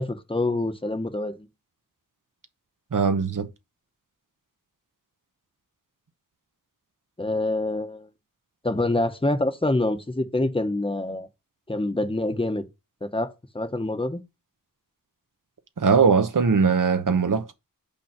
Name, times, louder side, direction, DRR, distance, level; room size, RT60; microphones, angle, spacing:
voice 1, 0.0-1.5 7.2-8.1 8.6-11.3 11.7-12.7 13.0-14.2, left 2 dB, 15° left, 1.0 m, -26 dB
voice 2, 2.9-3.5 15.8-17.5, right 5 dB, 65° right, 1.0 m, -20 dB
5.4 x 4.4 x 5.8 m
wide cardioid pair, 65°, 34 cm